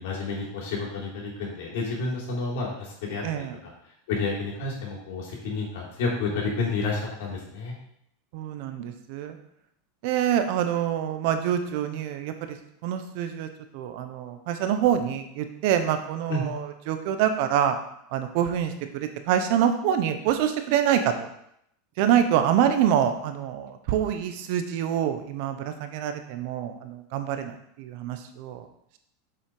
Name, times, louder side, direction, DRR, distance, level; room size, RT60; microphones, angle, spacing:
voice 1, 0.0-3.7 4.1-7.7 16.3-16.4, left 3 dB, 70° left, -3 dB, 3.8 m, -30 dB
voice 2, 3.2-3.5 8.3-9.4 10.0-12.3 12.8-13.5 13.7-17.8 18.1-18.7 19.0-21.3 22.0-28.6, right 9 dB, 60° right, 8 dB, 1.1 m, -26 dB
7.4 x 5.9 x 5.0 m, 0.74 s
hypercardioid pair, 115°, 0 cm